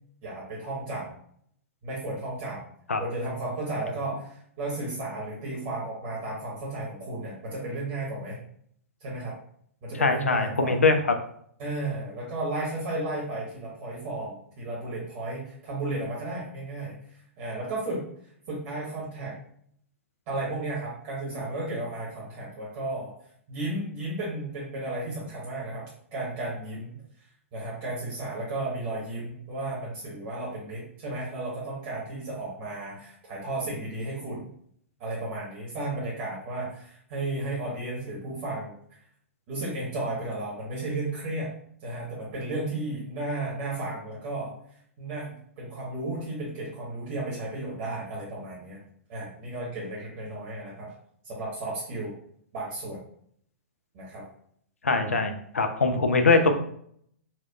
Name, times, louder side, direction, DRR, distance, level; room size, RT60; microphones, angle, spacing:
voice 1, 0.2-1.1 1.8-2.6 3.0-8.4 9.0-9.3 9.8-10.7 11.6-16.9 17.4-18.0 18.5-19.4 20.3-23.1 23.5-27.0 27.5-34.5 35.0-38.8 39.5-41.5 41.8-44.5 45.0-48.8 49.1-50.9 51.2-52.1 52.5-53.0 53.9-54.2, right 2 dB, 40° right, -6 dB, 1.2 m, -33 dB
voice 2, 10.0-11.0 54.8-56.5, left 3 dB, 75° left, 6 dB, 0.5 m, -22 dB
4.3 x 2.3 x 2.3 m, 0.65 s
figure-of-eight pair, 110°, 7 cm